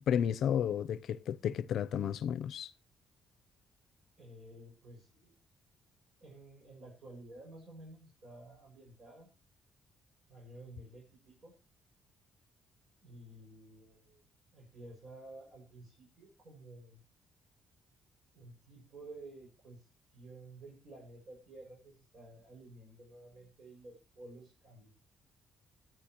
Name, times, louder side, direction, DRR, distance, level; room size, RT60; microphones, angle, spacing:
voice 1, 0.1-2.7, left 9 dB, 70° left, 0.6 m, -32 dB
voice 2, 4.2-5.4 6.2-9.3 10.3-11.6 13.0-14.2 14.5-17.0 18.3-24.9, right 2 dB, 55° right, 6.5 m, -53 dB
22.5 x 9.2 x 3.0 m
cardioid pair, 90°, 0 cm